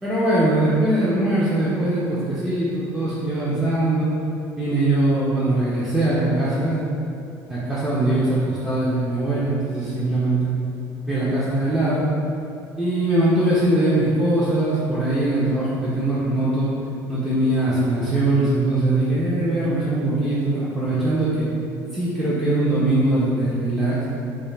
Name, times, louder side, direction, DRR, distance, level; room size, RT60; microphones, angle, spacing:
voice 1, 0.0-4.1 4.5-7.0 7.5-10.5 11.1-12.0 12.8-16.7 17.1-21.5 21.9-24.0, right 1 dB, 5° right, -10 dB, 0.3 m, -21 dB
2.1 x 2.1 x 3.1 m, 2.6 s
cardioid pair, 145°, 8 cm